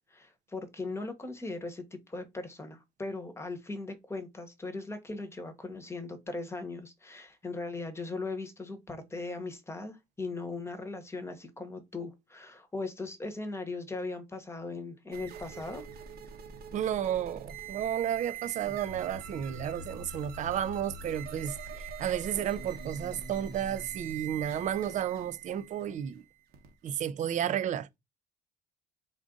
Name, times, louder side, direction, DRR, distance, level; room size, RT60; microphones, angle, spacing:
voice 1, 0.1-15.8, left 3 dB, 15° left, 1.0 m, -39 dB
sound 1, 15.1-27.0, right 5 dB, 65° right, 0.9 m, -43 dB
voice 2, 16.7-26.2 26.8-28.0, right 10 dB, 45° right, 0.4 m, -32 dB
3.6 x 2.5 x 3.7 m
cardioid pair, 110°, 17 cm